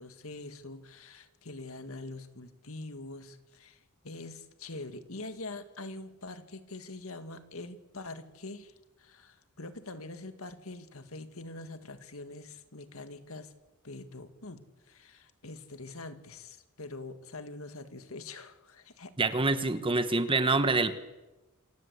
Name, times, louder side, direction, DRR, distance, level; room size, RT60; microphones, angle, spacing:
voice 1, 0.0-3.8 4.0-13.5 13.8-19.1, left 2 dB, 70° left, 9 dB, 2.0 m, -44 dB
voice 2, 19.2-21.0, right 3 dB, 25° right, 11 dB, 1.2 m, -26 dB
27.5 x 17.0 x 8.1 m, 1.1 s
head